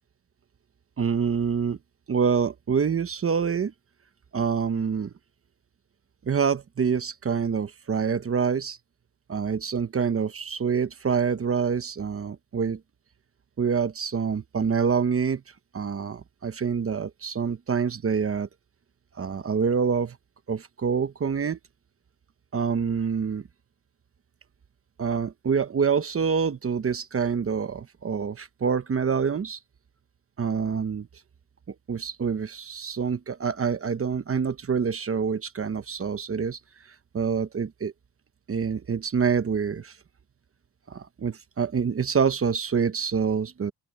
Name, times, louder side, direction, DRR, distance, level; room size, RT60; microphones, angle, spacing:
voice 1, 1.0-1.8 2.1-3.7 4.3-5.1 6.2-8.8 9.3-12.8 13.6-15.4 15.7-18.5 19.2-20.2 20.5-21.6 22.5-23.4 25.0-29.6 30.4-31.1 31.7-36.6 37.1-37.9 38.5-39.9 40.9-43.7, right 6 dB, 30° right, 1.0 m, -26 dB
open air
cardioid pair, 110°, 48 cm